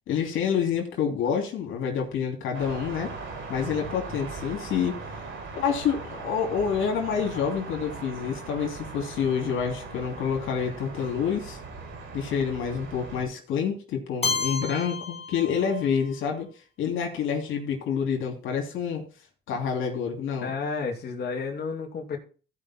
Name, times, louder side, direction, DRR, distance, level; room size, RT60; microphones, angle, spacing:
voice 1, 0.1-3.2 3.5-5.0 5.5-11.6 12.1-16.5 16.8-19.0 19.5-20.5, left 7 dB, 85° left, 2 dB, 2.8 m, -28 dB
sound 1, 2.5-13.2, right 3 dB, 80° right, 5.0 m, -39 dB
Keyboard (musical), 14.2-16.2, left 5 dB, 30° left, 2.0 m, -31 dB
voice 2, 20.4-22.2, left 4 dB, 55° left, 1 dB, 2.5 m, -31 dB
15.0 x 5.5 x 4.3 m, 0.36 s
cardioid pair, 90°, 20 cm